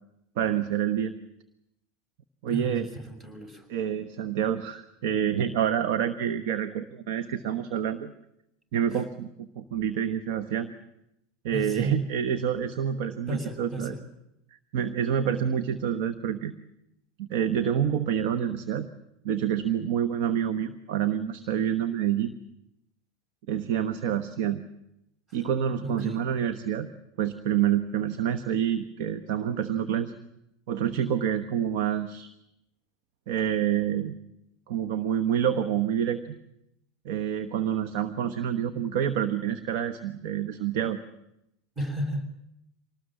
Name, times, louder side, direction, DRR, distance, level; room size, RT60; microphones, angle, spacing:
voice 1, 0.4-1.1 2.4-2.9 3.7-8.1 8.7-10.7 11.4-13.9 14.7-16.5 17.2-18.9 19.2-22.4 23.5-24.6 25.3-26.9 27.2-30.1 30.7-32.3 33.3-34.2 34.7-36.4 37.0-41.0, right 9 dB, 60° right, 9 dB, 1.2 m, -27 dB
voice 2, 2.5-3.7 8.9-9.0 11.5-12.0 13.3-14.0 25.3-25.4 25.8-26.2 41.7-42.3, right 1 dB, 25° right, 8 dB, 6.4 m, -33 dB
25.5 x 19.0 x 7.5 m, 0.84 s
hypercardioid pair, 85°, 0 cm